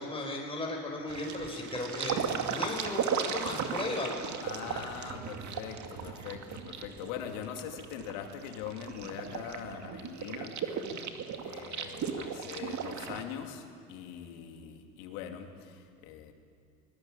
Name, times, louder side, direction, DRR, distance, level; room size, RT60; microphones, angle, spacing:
voice 1, 0.0-4.1, left 2 dB, 15° left, -1 dB, 4.5 m, -36 dB
sound 1, 1.1-13.2, right 6 dB, 45° right, 2.2 m, -36 dB
voice 2, 4.4-10.6 11.4-16.3, left 9 dB, 75° left, 5 dB, 2.6 m, -42 dB
21.5 x 18.5 x 8.7 m, 2.2 s
supercardioid pair, 90°, 41 cm